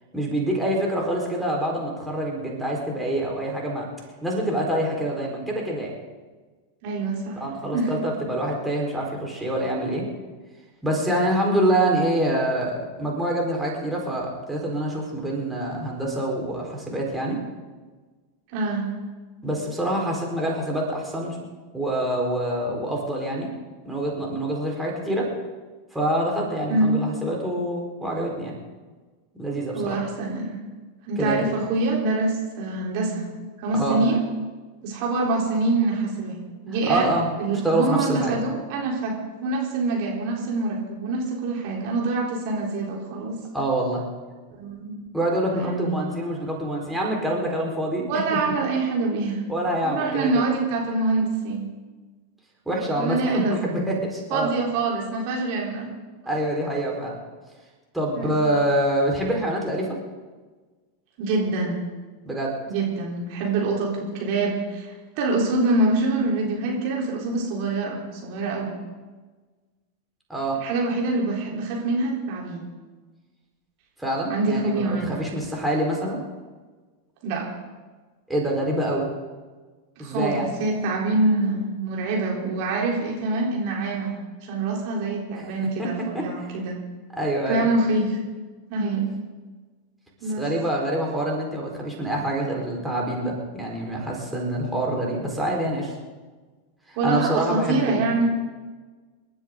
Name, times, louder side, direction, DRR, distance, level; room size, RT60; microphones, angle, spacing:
voice 1, 0.1-3.9 4.2-5.9 7.3-10.0 10.8-17.4 19.4-21.4 21.7-23.5 23.8-25.3 25.9-28.5 29.4-30.0 31.2-31.4 33.7-34.0 36.9-37.3 37.6-38.3 43.5-44.0 45.1-48.0 48.3-48.4 49.5-50.5 52.7-54.5 56.3-57.1 57.9-60.0 62.3-62.5 70.3-70.6 74.0-76.2 78.3-79.1 80.0-80.5 85.4-85.5 85.8-85.9 86.1-86.5 87.1-87.7 90.4-95.9 96.9-98.1, right 1 dB, 5° right, -2 dB, 4.5 m, -26 dB
voice 2, 6.8-7.4 7.7-7.9 18.5-18.9 26.7-27.0 29.7-30.5 31.1-33.3 33.6-34.2 34.8-36.4 36.6-43.4 44.5-44.9 45.5-45.9 48.1-49.4 49.8-51.7 53.0-53.8 54.3-55.9 58.1-58.4 61.2-61.8 62.7-68.7 70.6-72.7 74.3-75.2 77.2-77.4 80.0-84.1 84.4-86.7 87.5-88.2 88.7-89.1 90.2-90.4 97.0-98.3, right 3 dB, 45° right, -2 dB, 3.9 m, -25 dB
27.5 x 13.0 x 3.9 m, 1.3 s
figure-of-eight pair, 90°, 0 cm